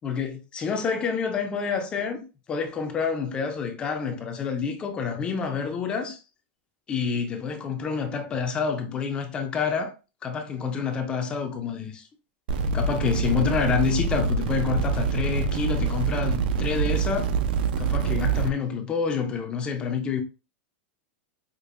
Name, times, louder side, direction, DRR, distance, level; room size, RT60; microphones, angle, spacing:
voice 1, 0.0-2.2 2.5-6.2 6.9-9.9 10.2-12.0 12.7-17.3 17.8-20.2, left 6 dB, 15° left, 0.4 m, -28 dB
sound 1, 12.5-18.5, right 4 dB, 55° right, 0.4 m, -25 dB
5.1 x 2.4 x 2.4 m
supercardioid pair, 170°, 6 cm